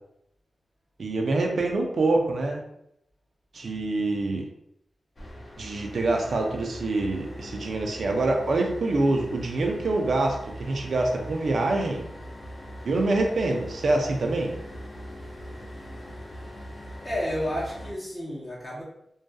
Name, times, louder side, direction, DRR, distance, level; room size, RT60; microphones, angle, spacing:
voice 1, 1.0-2.6 3.5-4.4 5.6-12.0 12.8-14.5, right 2 dB, 70° right, 2 dB, 0.5 m, -25 dB
sound 1, 5.2-17.9, equal, 45° left, 0.6 m, -41 dB
voice 2, 17.0-18.8, equal, 10° left, -7 dB, 0.8 m, -31 dB
2.6 x 2.3 x 2.3 m, 0.76 s
cardioid pair, 60°, 0 cm